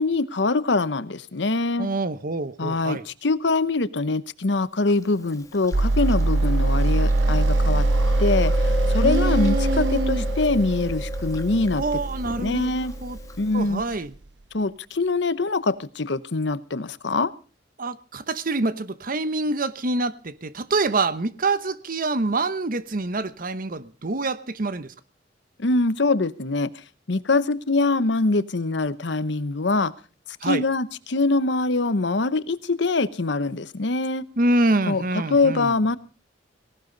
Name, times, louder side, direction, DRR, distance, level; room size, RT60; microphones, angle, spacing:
voice 1, 0.0-1.9 2.6-7.9 8.2-11.8 12.4-12.9 13.4-13.8 14.5-17.3 25.6-26.7 27.1-29.9 30.4-34.2 34.9-35.0 35.3-36.0, left 3 dB, 70° left, 0.9 m, -23 dB
voice 2, 1.8-3.0 9.0-10.2 11.8-12.7 13.0-13.2 13.5-14.1 17.8-24.9 30.4-30.6 34.4-36.0, right 2 dB, 50° right, 1.0 m, -26 dB
Chewing mastication, 5.0-13.9, left 3 dB, 20° left, 1.4 m, -36 dB
sound 1, 5.7-13.8, right 2 dB, 85° right, 1.1 m, -23 dB
18.0 x 17.5 x 3.9 m
head